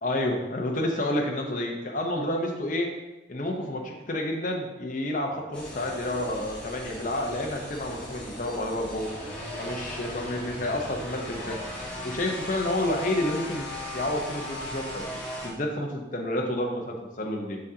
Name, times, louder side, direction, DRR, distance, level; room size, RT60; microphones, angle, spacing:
voice 1, 0.0-2.9 3.3-9.1 9.6-11.6 12.0-15.1 15.4-17.6, left 1 dB, 40° left, 1 dB, 0.9 m, -29 dB
sound 1, 5.5-15.5, equal, 5° left, 1.3 m, -37 dB
6.3 x 6.2 x 2.8 m, 1.1 s
head